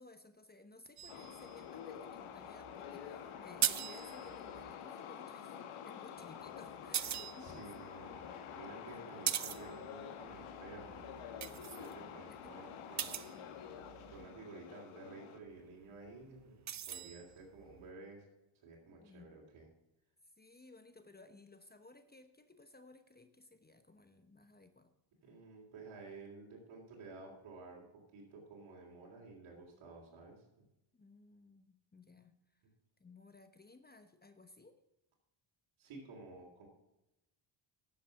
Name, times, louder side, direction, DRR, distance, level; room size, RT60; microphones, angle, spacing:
voice 1, 0.0-7.8 8.9-9.3 12.3-12.6 19.0-19.3 20.2-24.9 30.9-32.6 33.0-34.8, left 3 dB, 20° left, 9 dB, 1.0 m, -59 dB
sound 1, 1.0-4.7 6.2-14.3 15.5-17.9, right 10 dB, 35° right, 0.6 m, -43 dB
sound 2, 1.1-15.4, left 8 dB, 90° left, 1.4 m, -48 dB
voice 2, 7.4-11.0 11.5-13.5 13.8-18.3 18.5-19.7 25.2-30.6 35.8-36.7, right 3 dB, 75° right, -3 dB, 3.2 m, -53 dB
11.0 x 7.5 x 5.8 m, 0.94 s
cardioid pair, 80°, 48 cm